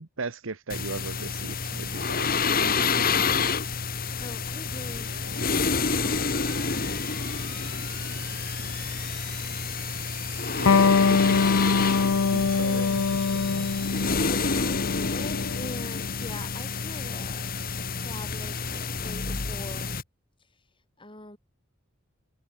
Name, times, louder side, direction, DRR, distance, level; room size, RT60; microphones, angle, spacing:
voice 1, 0.0-3.4 10.6-11.9 12.3-13.7, right 3 dB, 75° right, 1.2 m, -37 dB
sound 1, 0.7-20.0, left 5 dB, 45° left, 2.1 m, -29 dB
voice 2, 4.2-5.7 8.8-9.2 12.5-13.0 14.0-20.0 21.0-21.4, left 1 dB, 25° left, 7.8 m, -44 dB
sound 2, 4.7-14.7, right 9 dB, 50° right, 4.6 m, -46 dB
Electric guitar, 10.7-17.8, left 5 dB, 80° left, 0.6 m, -24 dB
head